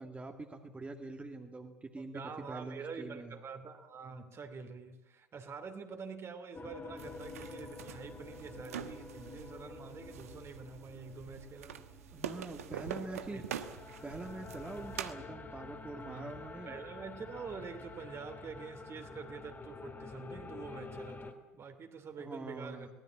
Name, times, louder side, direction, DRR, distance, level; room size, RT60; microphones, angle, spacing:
voice 1, 0.0-3.4 12.1-13.4 14.0-16.7 22.2-22.9, right 2 dB, 15° right, 3 dB, 2.4 m, -44 dB
voice 2, 2.0-11.8 12.7-12.8 13.1-13.4 15.9-16.2 16.7-22.9, right 5 dB, 35° right, 7 dB, 2.9 m, -46 dB
sound 1, 6.5-21.3, left 3 dB, 25° left, 2.8 m, -49 dB
sound 2, 7.0-15.1, right 9 dB, 70° right, 1.2 m, -45 dB
23.5 x 19.0 x 8.7 m, 1.0 s
figure-of-eight pair, 65°, 8 cm